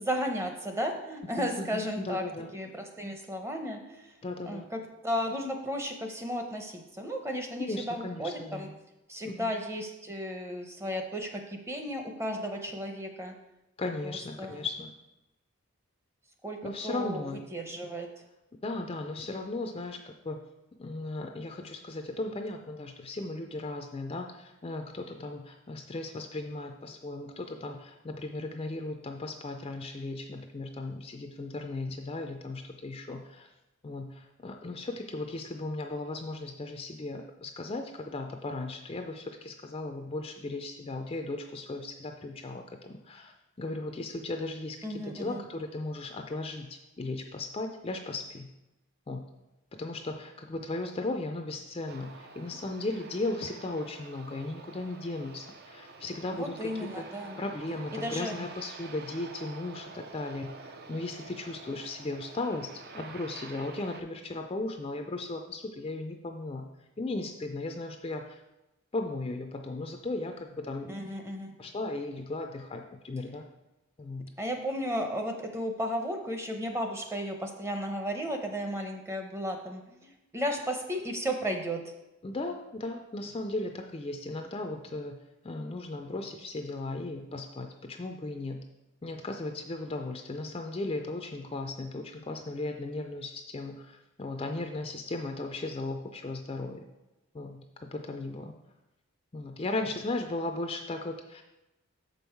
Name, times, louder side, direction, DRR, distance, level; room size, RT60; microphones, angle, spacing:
voice 1, 0.0-2.2 2.5-4.1 4.5-8.7 9.1-13.3 14.0-14.5 16.4-18.1 44.8-45.4 56.3-57.4 57.9-58.4 70.9-71.5 74.4-81.8, equal, 10° right, 4 dB, 0.7 m, -34 dB
voice 2, 1.4-2.5 4.2-4.7 7.7-8.7 9.2-9.5 13.8-14.9 16.6-17.5 18.6-20.4 20.8-33.5 33.8-48.5 49.1-49.3 49.7-56.7 57.0-57.1 57.4-66.7 67.0-68.4 68.9-70.9 71.6-73.5 74.0-74.3 82.2-88.6 89.0-96.8 97.3-98.5 99.3-101.4, left 2 dB, 25° left, 4 dB, 0.4 m, -36 dB
Aircraft, 51.9-64.0, right 3 dB, 45° right, 0.5 m, -48 dB
6.9 x 5.4 x 4.5 m, 0.97 s
head